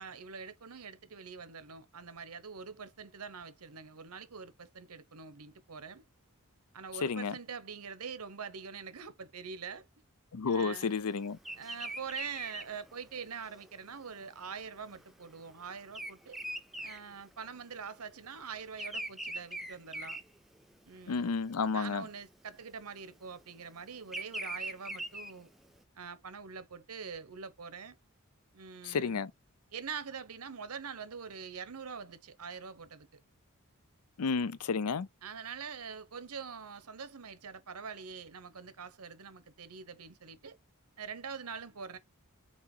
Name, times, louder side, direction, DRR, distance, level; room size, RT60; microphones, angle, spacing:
voice 1, 0.0-6.0 6.7-9.8 10.4-10.9 11.6-16.4 16.8-20.2 20.9-21.3 21.7-25.5 25.9-28.0 28.5-29.3 29.7-33.1 35.2-40.6 41.0-42.0, right 6 dB, 85° right, 1.0 m, -44 dB
voice 2, 7.0-7.3 10.3-11.4 21.1-22.0 28.9-29.3 34.2-35.1, left 5 dB, 85° left, 0.5 m, -31 dB
Bird vocalization bird call bird song, 11.4-17.8 18.1-21.0 21.5-21.8 22.8-25.8, right 1 dB, ahead, 0.6 m, -42 dB
7.4 x 3.0 x 4.4 m
head